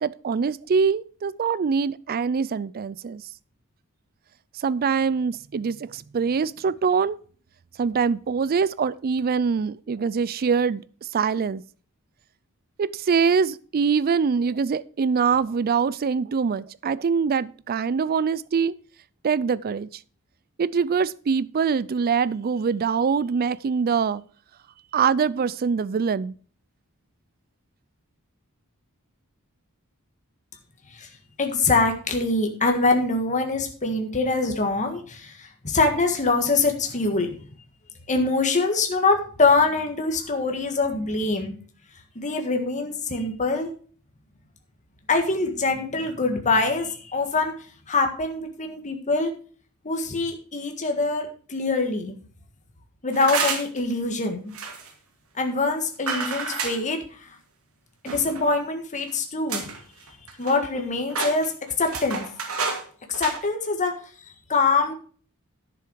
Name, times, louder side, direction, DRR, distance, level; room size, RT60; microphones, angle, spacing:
voice 1, 0.0-3.2 4.5-7.2 7.8-10.8 11.1-11.6 12.8-18.7 19.2-19.9 20.6-24.2 24.9-26.4, right 6 dB, 45° right, 0.4 m, -24 dB
voice 2, 31.4-37.4 38.1-41.5 42.1-43.7 45.1-47.5 47.9-49.3 49.8-52.1 53.0-54.5 55.3-57.3 58.0-59.7 60.4-61.5 61.8-62.3 63.1-63.9 64.5-64.9, left 3 dB, 35° left, 1.7 m, -24 dB
sound 1, 53.1-53.8 54.5-54.9 56.1-56.8 58.1-58.5 59.1-59.2 59.5-59.8 60.1-60.8 61.1-62.8 63.1-63.4, right 5 dB, 70° right, 2.6 m, -29 dB
11.0 x 7.0 x 4.7 m
head